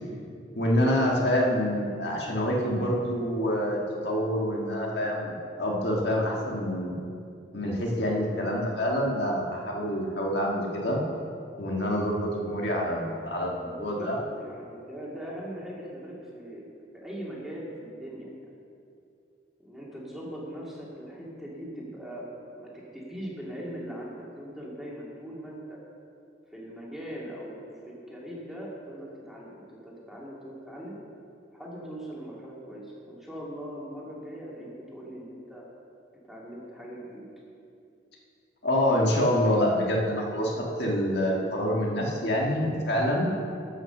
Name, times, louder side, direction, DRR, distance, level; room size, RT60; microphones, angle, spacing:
voice 1, 0.5-3.8 4.0-5.3 5.6-7.0 7.5-11.0 11.6-14.2 38.6-43.3, equal, 65° left, -2 dB, 1.6 m, -26 dB
voice 2, 13.6-16.6 16.9-18.4 19.6-22.3 22.5-25.8 26.5-31.0 31.5-35.7 36.2-37.3, equal, ahead, -5 dB, 2.0 m, -40 dB
12.5 x 6.0 x 6.5 m, 2.5 s
head